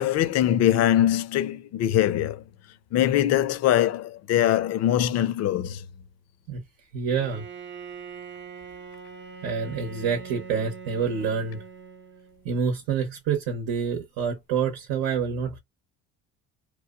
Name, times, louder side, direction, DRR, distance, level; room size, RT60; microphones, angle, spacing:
voice 1, 0.0-2.4 2.9-5.8, left 12 dB, 60° left, 0.6 m, -22 dB
voice 2, 6.9-7.4 9.4-11.6 12.4-15.6, right 6 dB, 70° right, 0.8 m, -27 dB
Bowed string instrument, 7.1-12.6, right 5 dB, 40° right, 0.6 m, -42 dB
3.0 x 2.0 x 2.4 m
supercardioid pair, 90°, 30 cm